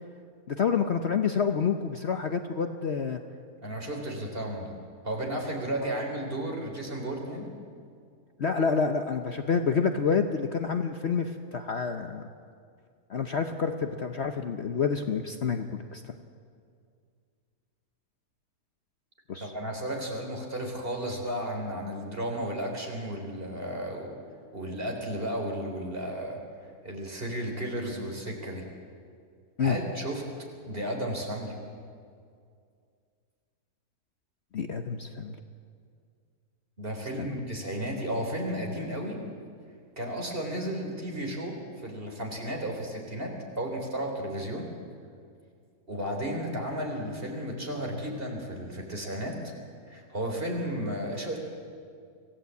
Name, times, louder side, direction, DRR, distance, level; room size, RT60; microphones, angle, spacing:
voice 1, 0.5-3.2 8.4-12.2 13.1-16.0 19.3-19.5 29.6-29.8 34.5-35.3 37.2-37.3, left 6 dB, 50° left, 6 dB, 1.0 m, -28 dB
voice 2, 3.6-4.8 5.0-7.5 19.4-24.2 24.5-26.4 26.8-28.6 29.6-30.3 30.7-31.6 36.8-39.2 40.0-44.7 45.9-49.5 49.9-51.4, right 1 dB, 35° right, 1 dB, 3.9 m, -33 dB
25.5 x 16.0 x 8.3 m, 2.2 s
omnidirectional pair, 1.6 m